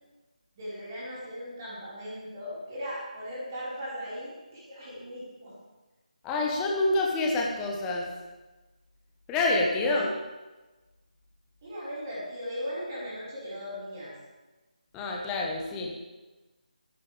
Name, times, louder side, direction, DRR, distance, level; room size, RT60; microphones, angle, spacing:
voice 1, 0.5-5.5 9.7-10.0 11.6-14.1, equal, 25° right, -8 dB, 5.1 m, -38 dB
voice 2, 6.2-8.1 9.3-10.1 14.9-15.9, left 2 dB, 10° left, -1 dB, 1.4 m, -27 dB
25.5 x 11.0 x 3.6 m, 1.2 s
figure-of-eight pair, 155°, 4 cm